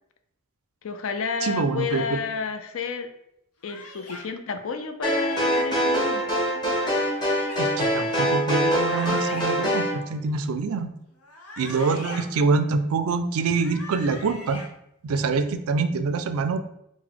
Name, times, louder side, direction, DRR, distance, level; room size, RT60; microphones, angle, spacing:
voice 1, 0.8-3.1 3.6-6.2 12.3-12.4, left 5 dB, 60° left, 7 dB, 0.4 m, -31 dB
voice 2, 1.4-2.2 7.6-10.9 11.6-14.6 15.0-16.6, right 4 dB, 70° right, 9 dB, 0.4 m, -25 dB
sound 1, 3.6-4.2 5.1-5.7 6.8-7.6 8.6-9.5 11.2-12.2 13.4-14.7, left 2 dB, 85° left, 0.8 m, -40 dB
sound 2, 5.0-9.9, equal, 20° left, 1.0 m, -24 dB
3.9 x 2.1 x 4.5 m, 0.78 s
head